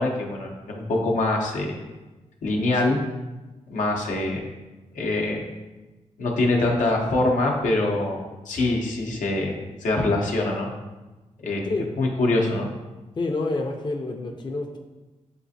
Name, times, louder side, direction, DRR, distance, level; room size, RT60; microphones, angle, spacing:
voice 1, 0.0-1.8 2.4-3.0 3.7-4.5 4.9-5.5 6.2-8.2 8.5-10.7 11.4-11.7 12.0-12.7, left 2 dB, 85° left, 0 dB, 0.7 m, -24 dB
voice 2, 13.2-14.8, left 2 dB, 35° left, 2 dB, 0.5 m, -28 dB
6.7 x 2.4 x 2.7 m, 1.1 s
cardioid pair, 70°, 13 cm